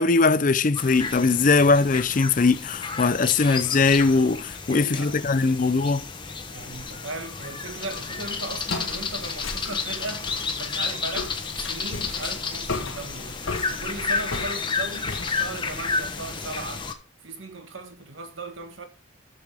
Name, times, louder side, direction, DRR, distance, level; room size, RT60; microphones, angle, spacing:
voice 1, 0.0-6.1, left 4 dB, 40° left, 0.5 m, -20 dB
sound 1, 0.7-16.9, left 4 dB, 25° left, 1.1 m, -31 dB
voice 2, 4.5-5.6 6.5-13.4 13.7-16.9 17.2-18.8, right 2 dB, 75° right, 1.6 m, -37 dB
Walk footsteps, 7.8-16.4, left 3 dB, 85° left, 1.6 m, -37 dB
14.0 x 7.0 x 3.6 m
head